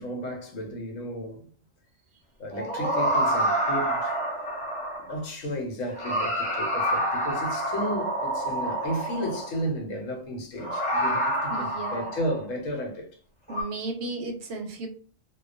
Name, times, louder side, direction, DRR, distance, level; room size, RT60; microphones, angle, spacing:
voice 1, 0.0-1.4 2.4-4.5 5.0-13.1, equal, 85° left, 1.1 m, -33 dB
sound 1, 2.5-5.2 5.9-9.6 10.6-12.4 13.5-13.6, right 1 dB, 5° left, 0.9 m, -27 dB
voice 2, 11.5-12.1 13.5-14.9, right 3 dB, 65° right, 0.8 m, -34 dB
2.3 x 2.2 x 2.4 m
omnidirectional pair, 1.3 m